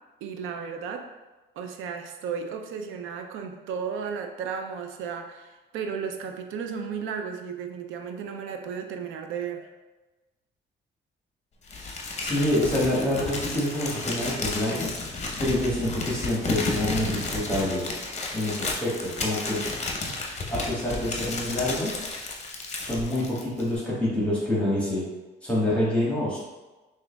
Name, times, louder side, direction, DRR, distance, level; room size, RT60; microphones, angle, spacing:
voice 1, 0.2-1.1 1.6-9.7, right 6 dB, 90° right, 5 dB, 0.5 m, -34 dB
Crumpling crinkling, 11.7-23.8, left 3 dB, 35° left, 0.7 m, -32 dB
voice 2, 12.2-14.9 15.4-17.8 18.3-19.6 20.5-22.0 22.8-25.1 25.4-26.4, left 1 dB, 5° left, -7 dB, 1.4 m, -27 dB
6.0 x 2.5 x 2.2 m, 1.1 s
cardioid pair, 90°, 20 cm